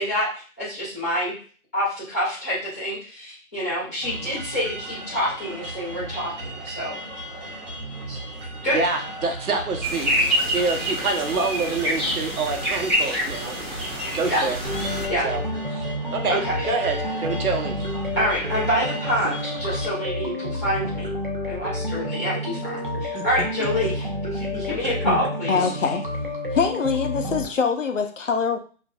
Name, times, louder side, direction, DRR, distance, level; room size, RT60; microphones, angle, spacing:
voice 1, 0.0-1.3 1.7-7.0 8.1-8.2 8.6-8.8 10.2-10.3 14.3-14.4 15.1-15.3 16.3-16.7 18.1-21.1 21.5-25.7, equal, 10° left, -10 dB, 1.0 m, -27 dB
sound 1, 4.0-19.9, right 1 dB, 60° right, 1.7 m, -36 dB
voice 2, 8.7-13.8 14.1-14.6 15.2-15.4 15.7-15.8 16.1-17.8 23.1-23.2, right 3 dB, 80° right, 3 dB, 0.9 m, -27 dB
sound 2, 9.8-15.1, equal, 15° right, 1.7 m, -26 dB
sound 3, 14.6-27.5, left 1 dB, 40° right, 0.5 m, -29 dB
voice 3, 25.5-26.0 26.5-28.6, left 5 dB, 60° left, 5 dB, 0.6 m, -23 dB
4.1 x 2.5 x 2.3 m, 0.39 s
hypercardioid pair, 175°, 43 cm